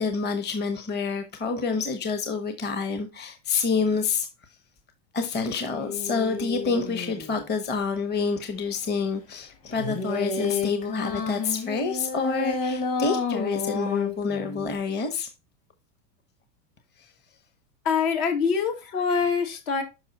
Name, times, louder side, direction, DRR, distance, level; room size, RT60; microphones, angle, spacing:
voice 1, 0.0-4.3 5.1-15.3 19.1-19.2, left 4 dB, 20° left, 1.0 m, -28 dB
sound 1, 5.7-7.5 9.7-14.8, left 4 dB, 40° left, 2.7 m, -30 dB
voice 2, 17.8-19.8, left 5 dB, 65° left, 2.7 m, -24 dB
6.5 x 5.4 x 4.1 m
supercardioid pair, 125°, 47 cm